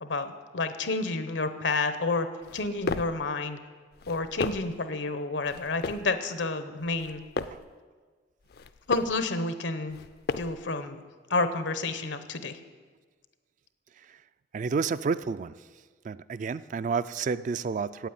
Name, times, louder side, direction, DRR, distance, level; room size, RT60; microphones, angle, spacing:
voice 1, 0.0-2.3 2.5-3.6 4.1-7.2 8.9-10.0 10.4-11.0 11.3-12.6, left 3 dB, 85° left, 10 dB, 0.9 m, -30 dB
sound 1, 2.4-3.2 3.9-4.8 5.4-6.1 6.8-7.7 8.4-9.2 9.9-10.7, left 4 dB, 55° left, 0.4 m, -35 dB
voice 2, 14.5-15.6 16.0-18.1, right 5 dB, 45° right, 14 dB, 0.3 m, -30 dB
9.2 x 8.5 x 8.8 m, 1.5 s
head